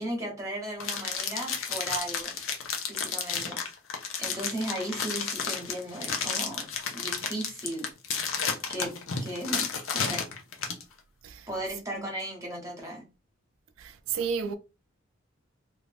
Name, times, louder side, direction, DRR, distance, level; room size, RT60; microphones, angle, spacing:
voice 1, 0.0-2.3 2.9-3.6 4.2-7.9 8.7-10.2 11.5-13.0, right 1 dB, 15° right, 1.1 m, -36 dB
sound 1, 0.8-10.8, left 6 dB, 85° left, 0.7 m, -32 dB
voice 2, 13.8-14.5, right 6 dB, 85° right, 0.3 m, -32 dB
2.7 x 2.4 x 3.4 m
head